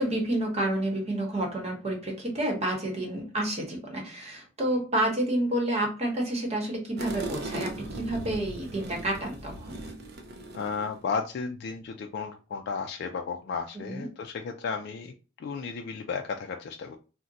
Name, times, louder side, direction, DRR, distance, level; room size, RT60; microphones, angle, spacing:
voice 1, 0.0-9.8 13.8-14.1, right 1 dB, 35° right, 0 dB, 1.0 m, -29 dB
sound 1, 7.0-11.0, right 2 dB, 55° right, 0.5 m, -38 dB
voice 2, 10.5-17.0, left 5 dB, 60° left, 4 dB, 0.3 m, -34 dB
2.5 x 2.1 x 3.9 m, 0.34 s
head